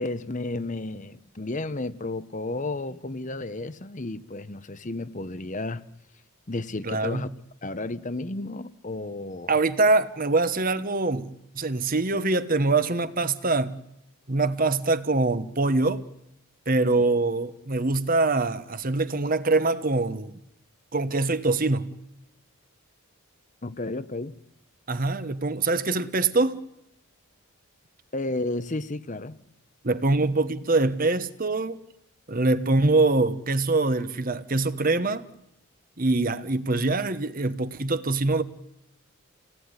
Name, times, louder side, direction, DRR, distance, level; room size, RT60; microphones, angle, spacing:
voice 1, 0.0-5.8 6.5-7.3 7.6-9.5 23.6-24.4 28.1-29.4, left 2 dB, 35° left, 0.9 m, -32 dB
voice 2, 6.8-7.3 9.5-11.3 11.5-13.8 14.3-16.0 16.7-20.3 20.9-21.9 24.9-26.6 29.8-31.8 32.3-35.2 36.0-38.4, right 3 dB, 40° right, 1.2 m, -24 dB
29.0 x 18.5 x 9.8 m
head